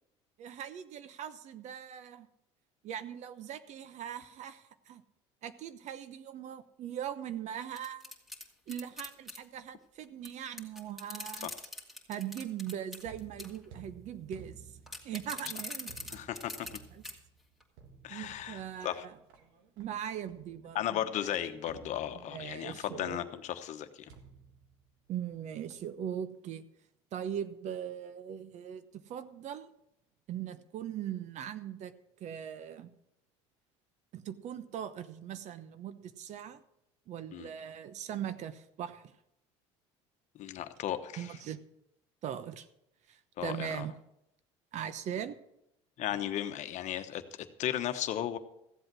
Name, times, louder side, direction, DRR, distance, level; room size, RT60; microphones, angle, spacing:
voice 1, 0.4-2.3 2.8-5.0 5.4-8.1 8.7-11.5 12.1-14.6 15.0-15.9 16.9-17.0 18.1-19.2 19.8-21.4 22.1-23.2 25.1-26.6 27.1-29.7 30.3-31.9 32.2-32.9 34.1-36.6 37.1-39.1 41.2-41.6 42.2-42.7 43.1-43.9 44.7-45.4, right 9 dB, 55° right, 13 dB, 0.9 m, -40 dB
sound 1, 7.8-9.4 10.2-10.3 10.5-13.0 13.4-13.6 14.9-16.8 17.0-17.1 17.6-17.7, left 2 dB, ahead, 2.4 m, -42 dB
sound 2, 13.0-20.9 21.7-22.7 24.1-25.4 25.7-26.0, right 6 dB, 75° right, 1.8 m, -55 dB
voice 2, 16.1-16.7 18.0-19.1 20.7-24.0 37.3-37.5 40.3-41.3 43.4-43.9 46.0-48.4, left 11 dB, 55° left, 9 dB, 1.1 m, -35 dB
15.0 x 7.9 x 6.1 m, 0.83 s
supercardioid pair, 85°, 15 cm